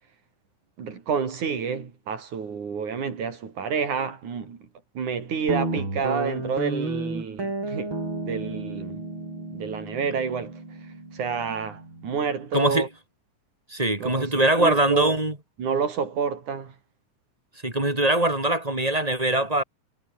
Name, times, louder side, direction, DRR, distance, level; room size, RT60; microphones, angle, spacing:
voice 1, 0.8-4.6 4.9-8.0 8.3-9.0 9.5-10.6 11.1-12.9 14.0-15.2 15.6-16.7, right 6 dB, 80° right, 5.0 m, -29 dB
Guitar, 5.5-12.2, right 2 dB, 40° right, 8.4 m, -32 dB
voice 2, 12.5-12.9 13.7-15.4 17.6-19.6, right 1 dB, 10° right, 3.6 m, -22 dB
omnidirectional pair, 3.4 m